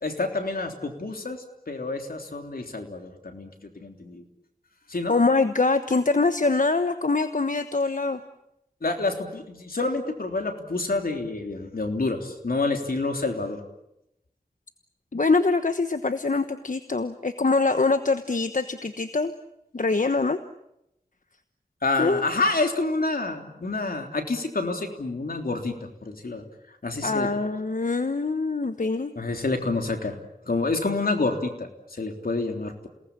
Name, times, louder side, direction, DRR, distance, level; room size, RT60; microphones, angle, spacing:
voice 1, 0.0-3.5 3.8-4.2 4.9-5.1 8.8-13.6 21.8-26.4 26.8-27.3 29.2-30.2 30.5-32.9, left 3 dB, 75° left, 4 dB, 3.5 m, -28 dB
voice 2, 5.1-8.2 15.1-19.3 19.7-20.4 22.0-22.2 27.0-29.1, left 3 dB, 60° left, 10 dB, 1.2 m, -24 dB
28.5 x 19.0 x 9.0 m, 0.83 s
wide cardioid pair, 45°, 15 cm